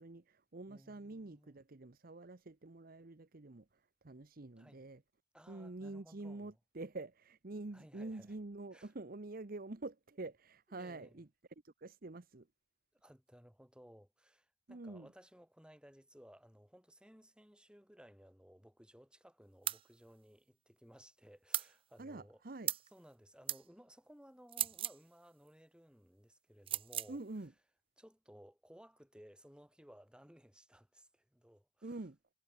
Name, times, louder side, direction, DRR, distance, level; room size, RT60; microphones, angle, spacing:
voice 1, 0.0-3.7 4.0-5.0 5.5-11.3 11.6-12.5 14.7-15.1 22.0-22.7 27.1-27.5 31.8-32.2, right 2 dB, 50° right, 0.9 m, -47 dB
voice 2, 0.7-1.6 4.6-4.8 5.3-6.6 7.7-8.3 8.7-8.9 10.7-11.2 13.0-22.4 22.9-27.2 28.0-32.0, equal, 5° right, 7.6 m, -60 dB
sound 1, 19.7-19.8 21.5-21.7 22.7-22.9 23.5-23.6 24.5-25.0 26.7-27.1, right 12 dB, 30° right, 0.3 m, -37 dB
head